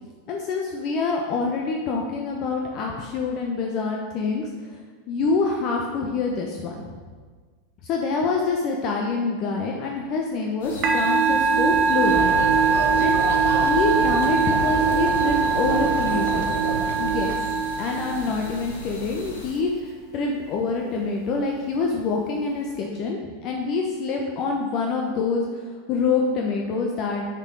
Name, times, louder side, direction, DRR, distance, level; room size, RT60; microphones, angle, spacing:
voice 1, 0.3-4.8 5.1-6.8 7.8-12.4 12.9-16.5 17.0-17.4 17.8-25.5 25.9-27.3, left 4 dB, 40° left, 0 dB, 0.9 m, -26 dB
sound 1, 10.6-19.5, right 1 dB, 70° left, 1.9 m, -38 dB
Musical instrument, 10.8-18.5, right 5 dB, 40° right, 1.0 m, -22 dB
sound 2, 12.0-17.4, right 3 dB, 70° right, 1.0 m, -29 dB
7.0 x 6.7 x 4.8 m, 1.5 s
figure-of-eight pair, 90°, 0 cm